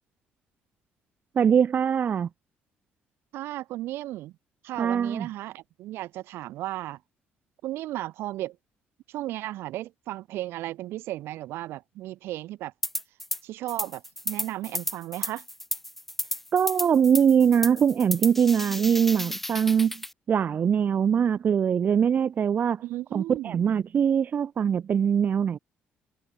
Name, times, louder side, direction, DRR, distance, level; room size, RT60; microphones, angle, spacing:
voice 1, 1.4-2.3 4.8-5.3 16.5-19.9 20.3-22.8 23.1-25.6, right 7 dB, 45° right, 1.0 m, -22 dB
voice 2, 3.3-4.3 4.6-7.0 7.6-8.6 9.1-12.7 13.4-15.4 22.8-23.6, right 15 dB, 80° right, 1.5 m, -35 dB
sound 1, 12.8-13.4 13.7-20.1, left 1 dB, 5° left, 0.8 m, -33 dB
cardioid pair, 100°, 4 cm